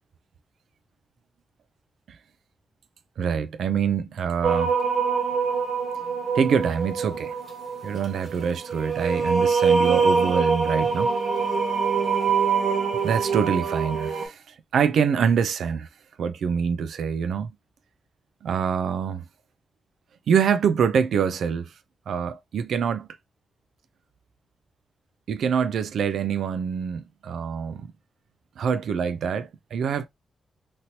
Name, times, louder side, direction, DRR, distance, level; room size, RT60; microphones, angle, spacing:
voice 1, 3.2-4.7 6.3-7.3 7.8-11.1 12.9-15.9 16.2-17.5 18.4-19.2 20.3-21.7 22.1-23.1 25.3-27.9 28.6-30.1, right 7 dB, 75° right, 0.3 m, -25 dB
sound 1, 4.4-14.3, right 5 dB, 45° right, 1.3 m, -24 dB
2.9 x 2.8 x 2.7 m
wide cardioid pair, 140°, 0 cm